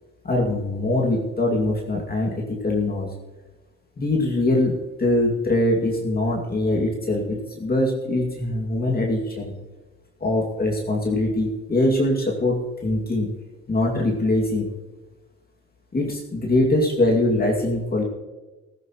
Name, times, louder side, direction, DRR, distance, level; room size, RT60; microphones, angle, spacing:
voice 1, 0.2-3.1 4.0-9.5 10.2-13.3 13.7-14.7 15.9-18.0, left 1 dB, 30° left, -2 dB, 2.4 m, -22 dB
15.0 x 14.5 x 3.1 m, 1.2 s
cardioid pair, 90°, 30 cm